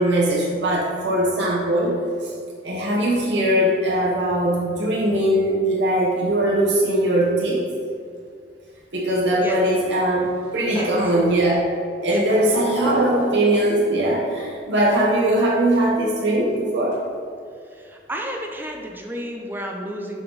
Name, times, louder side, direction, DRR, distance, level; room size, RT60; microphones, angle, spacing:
voice 1, 0.0-2.3 2.6-7.6 8.9-11.6 12.0-17.0, right 1 dB, 80° right, -5 dB, 1.0 m, -20 dB
sound 1, 10.4-11.5 12.0-13.7 14.9-15.0 16.5-16.6 16.9-17.0, right 1 dB, 45° left, 1.4 m, -29 dB
voice 2, 17.8-20.2, equal, 10° right, 1 dB, 0.5 m, -31 dB
6.6 x 3.8 x 3.9 m, 2.3 s
head